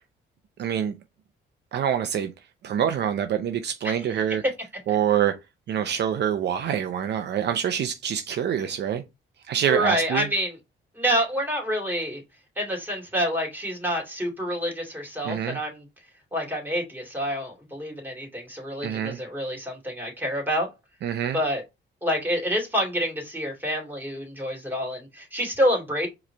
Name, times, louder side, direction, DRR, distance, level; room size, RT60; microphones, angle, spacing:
voice 1, 0.6-0.9 1.7-2.3 2.6-4.4 4.9-5.3 5.7-9.0 9.5-10.3 15.2-15.6 18.8-19.2 21.0-21.4, right 9 dB, 60° right, 0.6 m, -25 dB
voice 2, 3.8-4.4 4.9-5.0 9.7-10.6 11.0-12.2 12.6-15.8 16.3-20.7 21.3-21.6 22.0-26.1, equal, 10° right, 2.4 m, -27 dB
4.8 x 3.1 x 3.4 m
cardioid pair, 90°, 20 cm